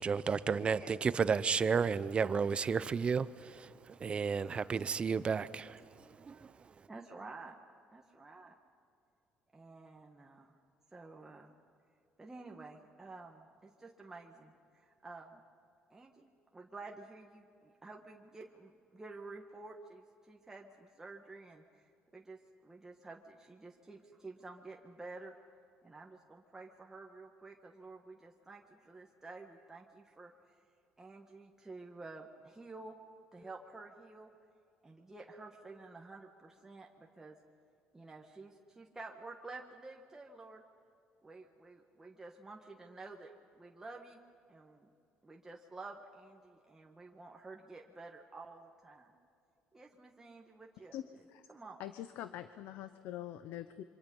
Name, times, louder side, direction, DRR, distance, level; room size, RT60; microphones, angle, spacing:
voice 1, 0.0-5.8 6.2-6.5, right 5 dB, 30° right, 0.7 m, -32 dB
voice 2, 4.4-4.7 6.9-7.5 7.9-8.5 9.5-10.6 10.9-11.5 12.2-15.4 15.9-16.3 16.5-21.6 22.1-25.3 25.8-30.3 31.0-33.0 33.3-34.3 34.8-37.4 37.9-40.6 41.2-44.2 44.5-44.9 45.2-49.1 49.7-51.0 51.5-51.8, right 3 dB, 15° right, 1.5 m, -51 dB
voice 3, 50.9-51.5 51.8-53.8, left 12 dB, 85° left, 0.8 m, -44 dB
26.5 x 25.0 x 5.4 m
cardioid pair, 120°, 3 cm